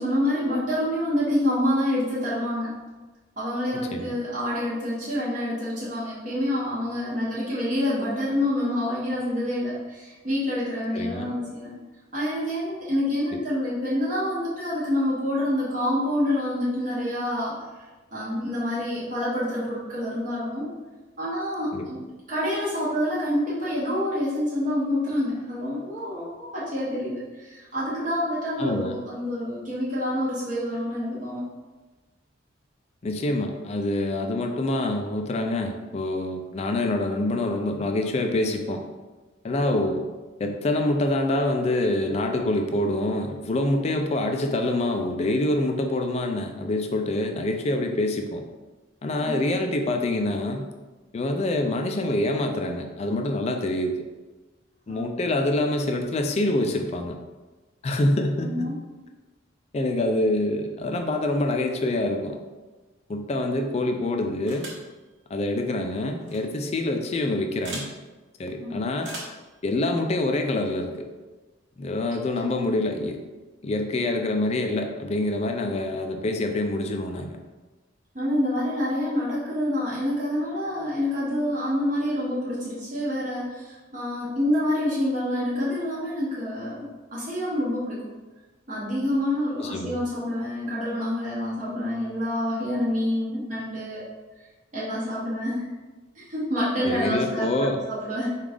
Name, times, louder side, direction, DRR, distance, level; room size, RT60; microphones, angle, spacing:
voice 1, 0.0-2.8 3.4-11.7 12.1-17.6 18.1-20.7 21.2-22.0 22.3-31.4 49.2-49.5 54.9-55.1 58.4-58.7 68.6-68.8 78.1-88.0 88.7-94.0 94.7-95.6 96.1-98.3, left 1 dB, 40° right, -8 dB, 1.0 m, -27 dB
voice 2, 10.9-11.3 21.7-21.8 28.6-28.9 33.0-38.8 39.4-40.0 40.4-48.4 49.0-50.7 51.1-54.0 54.9-57.2 57.8-58.7 59.7-62.4 63.1-64.7 65.3-67.9 68.4-69.1 69.6-71.1 71.8-73.2 73.6-77.4 89.6-90.0 96.8-97.8, left 1 dB, 35° left, 4 dB, 0.3 m, -26 dB
sound 1, 64.5-64.9 66.2-66.4 67.6-67.9 69.0-69.4, right 2 dB, 65° right, 1.2 m, -37 dB
4.9 x 2.4 x 3.4 m, 1.2 s
head